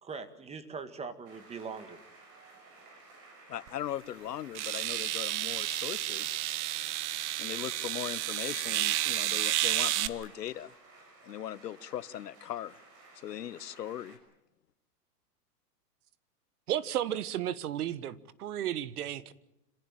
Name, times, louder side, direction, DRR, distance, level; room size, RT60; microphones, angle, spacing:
voice 1, 0.0-2.0, right 5 dB, 15° right, 1.8 m, -41 dB
sound 1, 1.2-14.2, right 3 dB, 30° right, 6.5 m, -54 dB
voice 2, 3.5-6.4 7.4-10.7 11.2-12.8 13.1-14.2, left 11 dB, 90° left, 1.1 m, -39 dB
sound 2, 3.7-3.8 4.5-10.1, right 15 dB, 45° right, 1.3 m, -31 dB
voice 3, 16.7-19.3, right 11 dB, 70° right, 1.4 m, -33 dB
26.0 x 16.5 x 9.0 m
hypercardioid pair, 140°, 47 cm